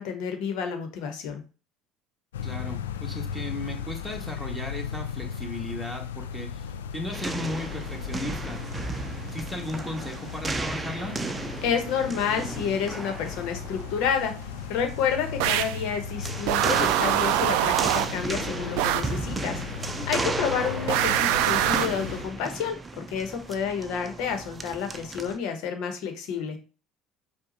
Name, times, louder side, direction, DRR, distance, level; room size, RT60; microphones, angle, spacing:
voice 1, 0.0-1.4 11.6-14.3 14.7-19.6 20.1-26.6, left 7 dB, 70° left, 6 dB, 1.0 m, -29 dB
sound 1, 2.3-22.2, left 7 dB, 90° left, 0.3 m, -37 dB
voice 2, 2.4-8.6 9.3-11.2 20.5-20.6, left 1 dB, 5° left, 1 dB, 1.6 m, -36 dB
sound 2, 7.1-25.4, right 3 dB, 20° right, 0.6 m, -35 dB
sound 3, 15.4-15.8 16.5-18.2 18.8-19.2 20.9-22.0, right 13 dB, 75° right, 0.3 m, -24 dB
4.7 x 2.3 x 4.0 m, 0.34 s
hypercardioid pair, 70°, 0 cm